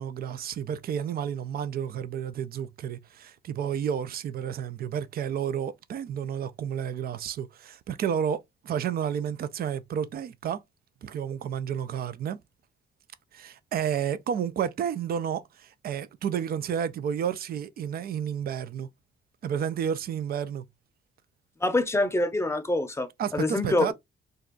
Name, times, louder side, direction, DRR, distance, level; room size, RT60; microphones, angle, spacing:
voice 1, 0.0-10.6 11.0-12.4 13.3-18.9 19.4-20.6 23.2-23.9, right 8 dB, 50° right, 0.4 m, -31 dB
voice 2, 21.6-23.9, left 2 dB, 15° left, 0.7 m, -25 dB
2.6 x 2.3 x 3.7 m
cardioid pair, 90°, 20 cm